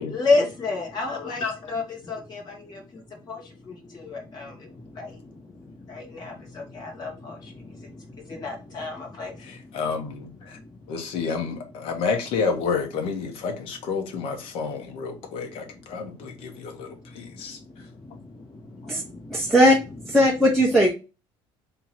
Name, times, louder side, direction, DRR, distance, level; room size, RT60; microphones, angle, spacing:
voice 1, 0.0-9.8 10.5-10.8 16.5-19.5, left 3 dB, 45° left, 1.9 m, -32 dB
voice 2, 1.1-1.7 9.4-10.6 10.9-17.6 18.1-18.2, left 5 dB, 70° left, 1.3 m, -30 dB
voice 3, 19.3-19.8 20.1-20.9, equal, 5° left, 0.9 m, -18 dB
3.6 x 3.0 x 4.4 m
cardioid pair, 135°, 10 cm